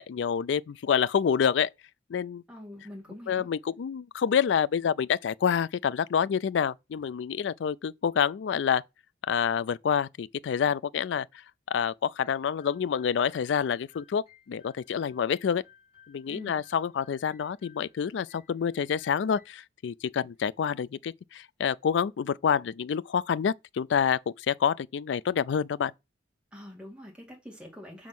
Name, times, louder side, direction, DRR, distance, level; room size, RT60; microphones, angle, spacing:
voice 1, 0.0-1.7 2.1-2.4 3.3-8.8 9.3-11.3 11.7-15.6 16.1-25.9, left 7 dB, 70° left, 0.3 m, -27 dB
voice 2, 2.5-3.5 16.3-16.6 26.5-28.1, left 1 dB, 5° right, 2.1 m, -45 dB
sound 1, 12.2-19.5, left 8 dB, 35° left, 4.5 m, -60 dB
6.1 x 3.6 x 5.9 m
head